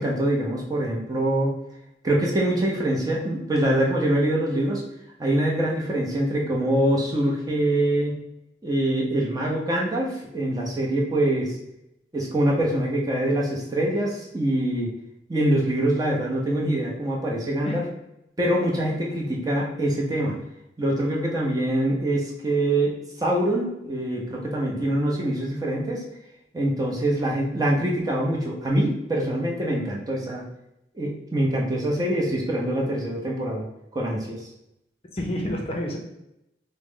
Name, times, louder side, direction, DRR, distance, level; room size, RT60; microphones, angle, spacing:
voice 1, 0.0-1.6 2.0-4.8 5.2-8.2 8.6-11.6 12.1-14.9 15.3-17.8 18.4-20.4 20.8-26.0 26.5-30.4 30.9-33.7 33.9-34.4, right 1 dB, 20° right, -3 dB, 0.6 m, -24 dB
voice 2, 35.1-36.0, left 1 dB, 35° left, 0 dB, 0.5 m, -30 dB
3.7 x 2.1 x 3.6 m, 0.83 s
head